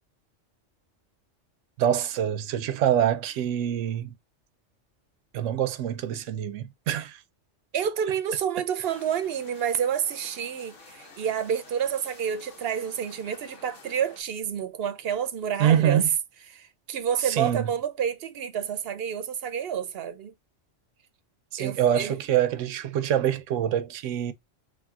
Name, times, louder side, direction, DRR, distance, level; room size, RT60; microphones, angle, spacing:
voice 1, 1.8-4.1 5.3-7.2 15.6-16.1 17.2-17.7 21.5-24.3, right 10 dB, 90° right, 0.9 m, -25 dB
voice 2, 7.7-16.1 16.5-20.3 21.6-22.2, right 8 dB, 65° right, 0.7 m, -29 dB
Park ambiance, 8.8-14.2, left 3 dB, 90° left, 1.7 m, -50 dB
5.0 x 3.1 x 2.3 m
omnidirectional pair, 1.2 m